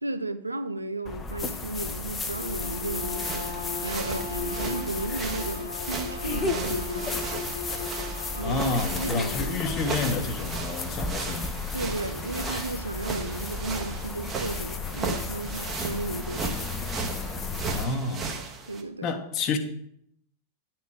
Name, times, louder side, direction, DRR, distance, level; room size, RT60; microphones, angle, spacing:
voice 1, 0.0-7.3 8.2-8.7 9.0-9.6 11.7-16.7 18.7-19.1, right 2 dB, 80° right, 0.6 m, -34 dB
sound 1, 1.1-17.9, left 3 dB, 20° left, 0.8 m, -34 dB
Bowed string instrument, 2.3-9.8, left 4 dB, 75° left, 1.9 m, -37 dB
sound 2, 3.1-18.8, right 4 dB, 25° right, 1.3 m, -36 dB
voice 2, 8.4-11.5 17.7-18.3 19.0-19.6, left 4 dB, 35° left, 1.1 m, -29 dB
10.5 x 4.6 x 6.2 m
figure-of-eight pair, 90°, 0 cm